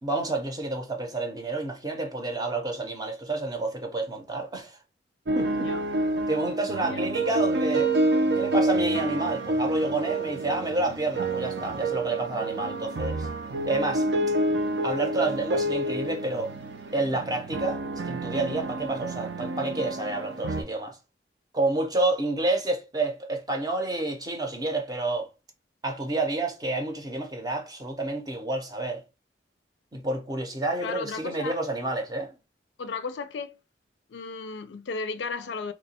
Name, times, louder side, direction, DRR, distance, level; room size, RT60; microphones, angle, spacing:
voice 1, 0.0-4.8 5.3-5.7 6.3-7.9 8.4-13.2 13.7-14.1 14.8-16.5 16.9-21.0 21.5-25.3 25.8-29.0 29.9-32.3, right 2 dB, 20° right, 0.6 m, -29 dB
sound 1, 5.3-20.6, right 1 dB, 70° right, 0.5 m, -28 dB
voice 2, 12.4-13.1 30.8-31.6 32.8-33.6 34.1-35.7, left 4 dB, 75° left, 0.4 m, -35 dB
2.9 x 2.2 x 4.1 m
head